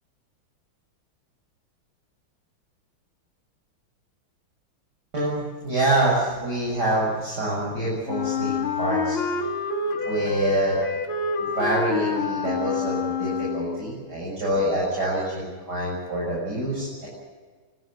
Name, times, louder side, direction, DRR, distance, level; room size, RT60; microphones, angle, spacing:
voice 1, 5.1-9.2 10.0-10.8 11.1-17.1, right 1 dB, 50° right, -5 dB, 7.5 m, -26 dB
Wind instrument woodwind instrument, 8.1-13.9, left 4 dB, 85° left, 3.1 m, -27 dB
24.5 x 17.5 x 9.0 m, 1.5 s
omnidirectional pair, 2.3 m